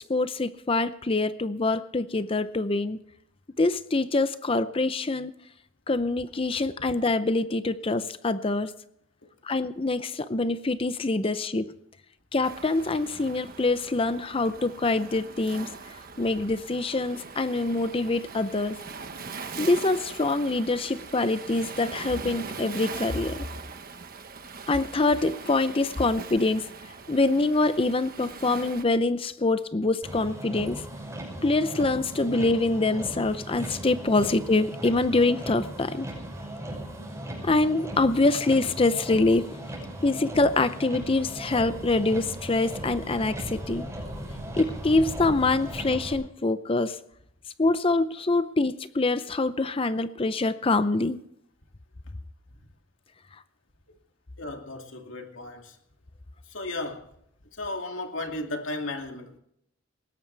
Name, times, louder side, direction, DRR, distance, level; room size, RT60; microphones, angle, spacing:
voice 1, 0.0-3.0 3.6-5.3 5.9-8.7 9.4-11.7 12.3-15.7 16.2-18.8 19.6-23.5 24.7-26.6 27.1-30.8 31.4-36.1 37.4-39.6 40.0-43.9 44.6-47.0 47.6-51.2, left 2 dB, 25° left, 13 dB, 0.6 m, -25 dB
Waves surf, 12.4-28.8, right 4 dB, 45° right, 1.3 m, -41 dB
Motor vehicle (road), 30.0-46.1, right 1 dB, 15° right, 6.1 m, -37 dB
voice 2, 54.4-55.8 56.5-57.1 57.5-59.4, left 2 dB, 70° left, 3 dB, 2.5 m, -35 dB
20.5 x 17.0 x 3.4 m, 0.74 s
head